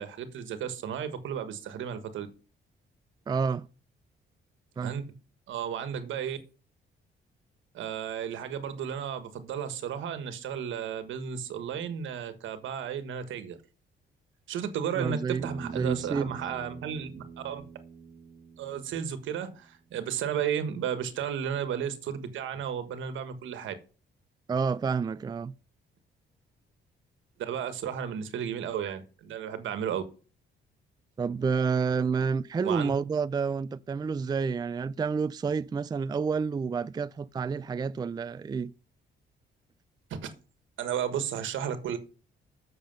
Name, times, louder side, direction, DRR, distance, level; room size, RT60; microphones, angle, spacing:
voice 1, 0.0-2.3 4.8-5.0 5.5-6.4 7.7-13.6 14.5-17.6 18.6-23.7 27.4-30.0 32.6-32.9 40.1-40.3 40.8-42.0, right 8 dB, 80° right, 1.5 m, -33 dB
voice 2, 3.3-3.7 4.8-5.0 15.0-16.4 24.5-25.5 31.2-38.7, right 5 dB, 20° right, 0.4 m, -29 dB
Bass guitar, 15.4-19.7, right 5 dB, 35° right, 1.4 m, -45 dB
7.6 x 6.7 x 5.4 m
cardioid pair, 90°, 20 cm